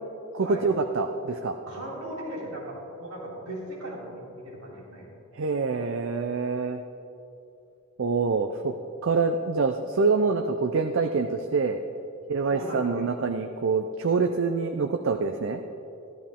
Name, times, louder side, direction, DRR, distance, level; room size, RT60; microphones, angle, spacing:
voice 1, 0.3-1.6 5.3-6.8 8.0-8.7 9.0-11.8 12.3-15.6, right 4 dB, 55° right, 6 dB, 0.5 m, -26 dB
voice 2, 1.7-5.1 12.4-13.1, right 1 dB, 75° right, -3 dB, 3.1 m, -37 dB
15.5 x 11.5 x 3.7 m, 2.7 s
head